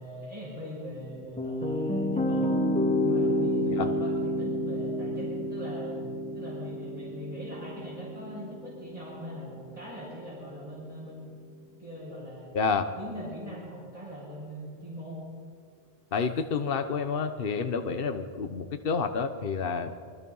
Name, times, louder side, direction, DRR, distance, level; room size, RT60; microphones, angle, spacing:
voice 1, 0.0-2.5 3.0-6.0 6.3-11.3 11.8-12.5 13.0-15.2, equal, 35° right, -8 dB, 7.0 m, -41 dB
sound 1, 1.0-10.1, left 1 dB, 5° left, 3.0 m, -30 dB
voice 2, 16.1-19.9, left 5 dB, 60° left, 8 dB, 1.3 m, -29 dB
29.0 x 23.5 x 5.5 m, 2.1 s
omnidirectional pair, 1.1 m